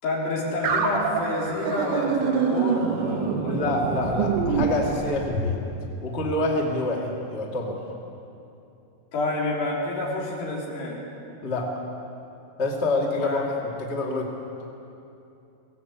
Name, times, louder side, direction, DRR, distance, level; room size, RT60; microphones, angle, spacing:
voice 1, 0.0-3.7 4.2-4.3 9.1-11.0 13.2-13.4, left 2 dB, 55° left, -4 dB, 5.7 m, -29 dB
sound 1, 0.6-5.6, right 5 dB, 60° right, 2.4 m, -25 dB
voice 2, 3.5-7.8 11.4-11.8 12.6-14.3, left 2 dB, 85° left, -1 dB, 0.6 m, -27 dB
21.0 x 17.0 x 8.2 m, 2.8 s
omnidirectional pair, 5.8 m